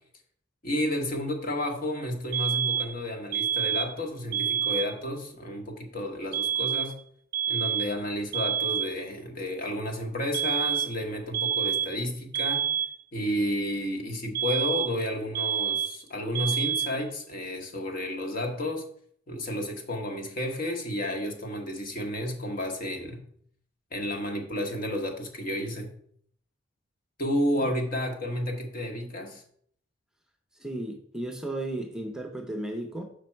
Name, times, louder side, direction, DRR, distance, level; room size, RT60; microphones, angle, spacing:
voice 1, 0.6-6.9 7.5-12.6 13.1-18.8 19.3-23.2 23.9-25.9 27.2-29.4, left 1 dB, 45° left, 1.3 m, -31 dB
sound 1, 2.3-3.0 3.3-4.0 4.3-5.0 6.3-7.0 7.3-8.0 8.3-9.0 10.3-11.0 11.3-12.0 12.3-13.0 14.4-15.0 15.4-16.0 16.4-17.0, right 8 dB, 50° right, 0.3 m, -28 dB
voice 2, 30.6-33.0, right 1 dB, 5° right, 0.7 m, -34 dB
6.7 x 5.1 x 4.5 m
head